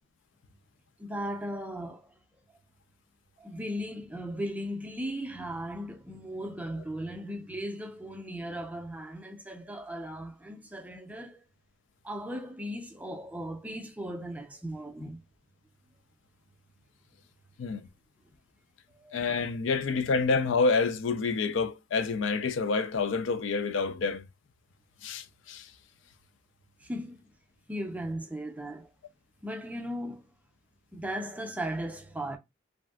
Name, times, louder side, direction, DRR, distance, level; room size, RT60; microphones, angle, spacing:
voice 1, 1.0-2.1 3.4-11.4 12.0-15.2 18.9-19.2 26.8-27.2 27.7-28.9 29.4-30.3 30.9-32.4, equal, 10° right, 0.4 m, -37 dB
voice 2, 19.1-24.2 25.0-25.7, left 4 dB, 80° left, 0.4 m, -28 dB
3.2 x 2.6 x 2.2 m
head